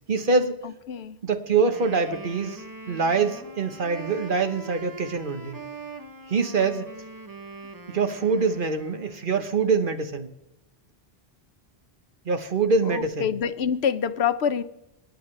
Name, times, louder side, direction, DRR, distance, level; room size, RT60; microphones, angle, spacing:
voice 1, 0.1-0.6 1.2-5.6 6.3-6.9 7.9-10.3 12.2-13.3, right 4 dB, 55° right, 8 dB, 1.3 m, -24 dB
voice 2, 0.6-1.2 12.8-14.6, left 7 dB, 85° left, 12 dB, 1.0 m, -26 dB
Wind instrument woodwind instrument, 1.6-9.3, right 3 dB, 20° right, 0.9 m, -42 dB
27.0 x 9.4 x 3.3 m, 0.87 s
omnidirectional pair, 1.1 m